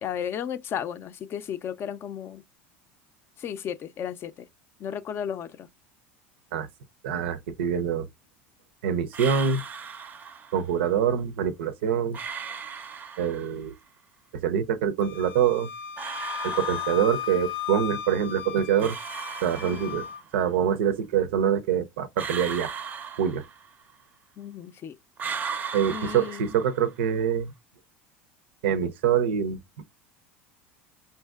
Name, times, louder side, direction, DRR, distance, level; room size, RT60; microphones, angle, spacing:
voice 1, 0.0-2.4 3.4-4.5 4.8-5.7 19.6-20.0 24.4-25.0 25.9-26.6, left 8 dB, 40° left, 0.4 m, -34 dB
voice 2, 7.0-8.1 8.8-9.6 10.5-12.2 13.2-13.7 14.4-15.7 16.4-19.0 19.4-20.1 20.3-22.7 23.2-23.4 25.7-27.5 28.6-29.6, right 8 dB, 80° right, 0.5 m, -25 dB
sound 1, 9.1-10.6 12.1-13.6 16.0-17.5 18.8-20.3 22.2-23.9 25.2-27.0, right 6 dB, 30° right, 0.5 m, -37 dB
Wind instrument woodwind instrument, 15.0-20.2, left 11 dB, 75° left, 0.7 m, -35 dB
5.5 x 2.6 x 2.3 m
supercardioid pair, 100°, 6 cm